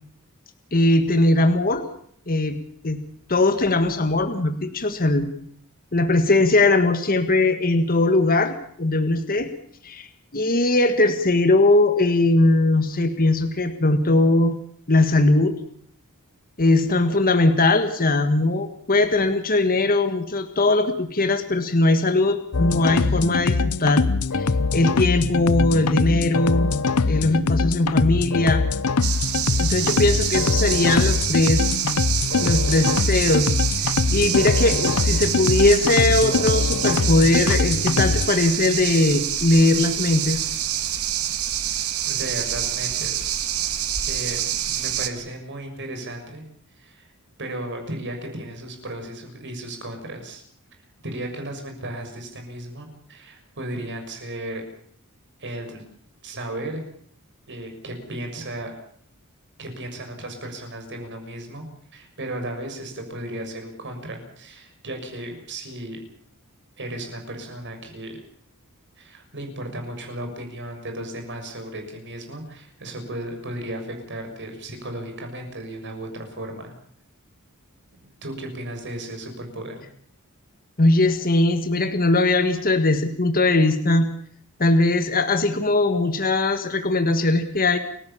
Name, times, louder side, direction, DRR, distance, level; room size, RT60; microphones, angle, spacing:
voice 1, 0.7-1.8 2.3-3.0 3.3-5.3 5.9-9.5 9.8-10.1 10.3-14.5 14.9-15.6 16.6-24.0 24.3-26.7 27.1-28.6 29.6-31.9 32.4-33.5 34.1-40.4 80.8-84.1 84.6-87.8, left 2 dB, 40° left, 8 dB, 1.7 m, -20 dB
sound 1, 22.5-38.3, left 4 dB, 75° left, 0.9 m, -23 dB
sound 2, 29.0-45.1, right 10 dB, 75° right, 2.0 m, -26 dB
voice 2, 42.0-43.3 44.0-46.4 46.7-47.1 47.4-50.4 51.0-54.6 55.4-55.8 56.2-56.8 57.5-58.7 59.6-61.6 61.9-66.0 66.8-68.2 69.0-76.7 78.0-79.9, right 1 dB, 55° right, 4 dB, 6.7 m, -35 dB
29.5 x 16.0 x 7.3 m, 0.62 s
head